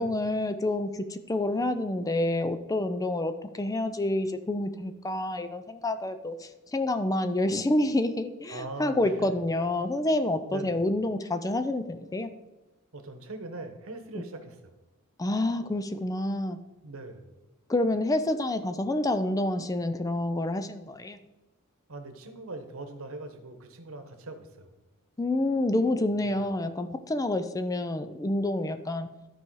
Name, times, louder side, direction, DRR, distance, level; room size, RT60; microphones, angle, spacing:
voice 1, 0.0-12.3 15.2-16.6 17.7-21.2 25.2-29.1, left 1 dB, 15° left, 10 dB, 0.4 m, -28 dB
voice 2, 8.5-9.4 10.5-10.8 12.9-14.7 16.8-17.4 21.9-24.7 26.2-26.4, right 2 dB, 65° right, 7 dB, 1.1 m, -41 dB
12.5 x 4.7 x 4.7 m, 1.1 s
head